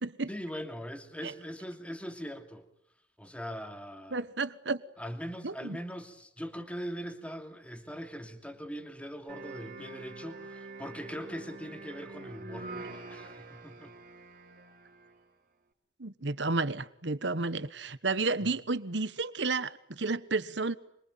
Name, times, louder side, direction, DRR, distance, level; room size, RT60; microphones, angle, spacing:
voice 1, 0.3-2.7 3.2-4.2 5.0-14.0 18.4-18.5, equal, 5° left, 7 dB, 2.7 m, -41 dB
voice 2, 4.1-4.8 5.4-5.8 16.0-20.8, right 3 dB, 70° right, 15 dB, 1.3 m, -32 dB
sound 1, 9.3-15.2, right 3 dB, 45° right, 3.8 m, -45 dB
26.5 x 23.5 x 9.3 m, 0.73 s
head